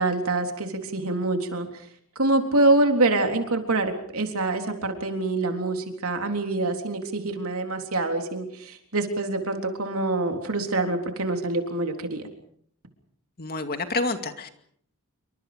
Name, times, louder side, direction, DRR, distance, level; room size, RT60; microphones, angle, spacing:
voice 1, 0.0-1.7 2.2-12.2, right 2 dB, 70° right, 4 dB, 3.7 m, -25 dB
voice 2, 13.4-14.5, left 3 dB, 45° left, 7 dB, 2.3 m, -28 dB
28.0 x 24.5 x 5.2 m, 0.65 s
head